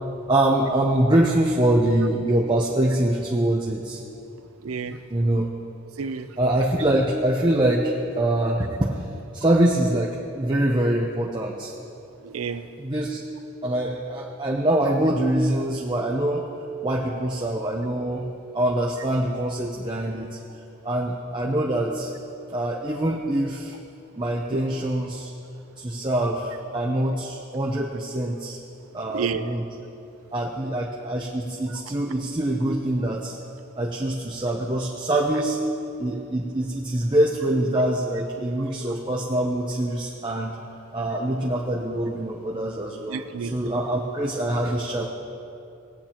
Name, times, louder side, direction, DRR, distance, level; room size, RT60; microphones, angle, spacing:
voice 1, 0.3-4.0 5.1-5.5 6.4-9.1 9.3-11.7 12.8-13.2 13.6-16.5 16.8-18.3 18.5-20.3 20.8-22.1 22.5-23.7 24.2-25.3 25.8-28.6 28.9-29.7 30.3-33.4 33.8-35.6 36.0-40.6 40.9-45.1, right 1 dB, 20° right, -2 dB, 0.7 m, -24 dB
voice 2, 4.6-5.0 6.0-6.3 12.2-12.7 29.1-29.4 31.7-31.8 43.1-43.7, right 6 dB, 85° right, 11 dB, 0.5 m, -30 dB
20.0 x 9.0 x 2.9 m, 2.7 s
head